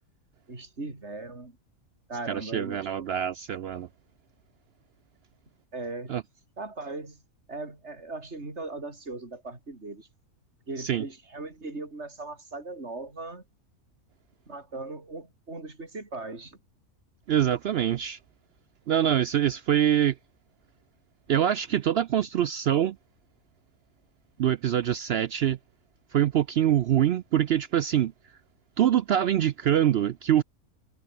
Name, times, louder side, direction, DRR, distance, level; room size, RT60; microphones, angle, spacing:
voice 1, 0.5-1.6 2.1-3.1 5.7-6.1 6.6-7.2 7.5-10.1 10.7-13.4 14.5-16.6, right 3 dB, 45° right, 4.7 m, -38 dB
voice 2, 2.3-3.9 6.1-6.2 10.8-11.0 17.3-18.2 18.9-20.1 21.3-23.0 24.4-25.6 26.1-28.1 28.8-30.4, right 10 dB, 70° right, 0.6 m, -24 dB
omnidirectional pair, 1.6 m